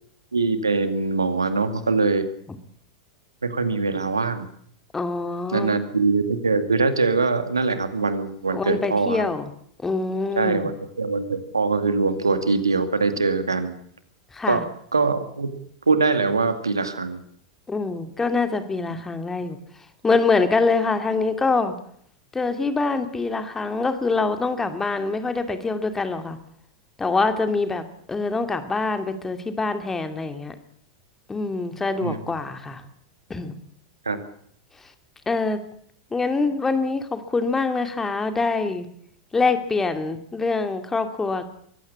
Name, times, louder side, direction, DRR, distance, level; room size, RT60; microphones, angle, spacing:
voice 1, 0.3-2.3 3.4-4.5 5.5-9.3 10.4-10.7 11.0-13.8 14.5-14.7 14.9-15.5 15.9-17.2 32.0-32.2 34.1-34.2, right 4 dB, 80° right, 10 dB, 2.2 m, -22 dB
voice 2, 4.9-5.8 8.5-9.5 9.8-10.7 14.3-14.6 17.7-19.6 20.0-21.7 22.3-26.4 27.0-30.5 31.3-32.8 33.3-33.6 35.3-35.6 36.1-38.9 39.3-41.4, left 3 dB, 15° left, 8 dB, 2.5 m, -24 dB
23.5 x 15.5 x 8.6 m, 0.66 s
figure-of-eight pair, 90°, 2 cm